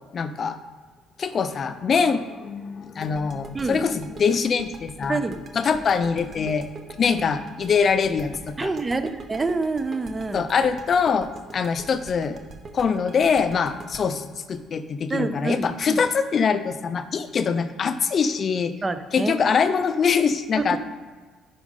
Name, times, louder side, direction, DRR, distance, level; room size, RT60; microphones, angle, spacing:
voice 1, 0.1-0.6 1.2-5.2 5.6-6.7 7.0-8.7 10.3-12.4 12.7-18.7 19.1-20.8, left 6 dB, 35° left, 11 dB, 0.6 m, -23 dB
sound 1, 3.0-15.8, right 3 dB, 35° right, 0.9 m, -42 dB
voice 2, 3.5-3.9 5.1-5.4 8.6-10.5 15.1-16.0 18.8-19.3 20.6-20.8, right 3 dB, 15° right, 10 dB, 0.5 m, -27 dB
9.9 x 5.1 x 5.4 m, 1.4 s
cardioid pair, 160°, 0 cm